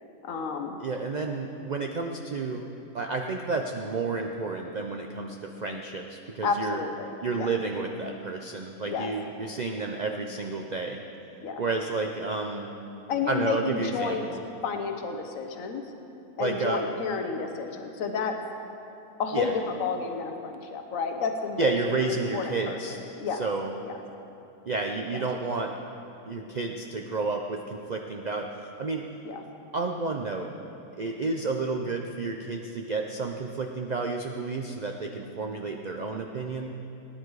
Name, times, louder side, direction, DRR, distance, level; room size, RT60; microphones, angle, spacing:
voice 1, 0.2-0.8 6.4-7.5 8.9-9.1 11.4-11.6 13.1-14.2 14.6-15.8 16.4-18.4 19.2-21.8 22.1-23.4 23.8-23.9 25.1-25.2 29.2-29.4, left 5 dB, 55° left, 5 dB, 1.4 m, -31 dB
voice 2, 0.8-6.8 7.2-11.0 11.6-12.7 13.3-14.4 16.4-16.8 19.3-19.5 21.6-23.0 23.4-23.7 24.7-25.7 26.2-28.5 28.8-29.0 29.7-30.5 31.0-36.7, right 3 dB, 60° right, 2 dB, 0.4 m, -31 dB
19.5 x 10.5 x 4.8 m, 2.9 s
omnidirectional pair, 1.7 m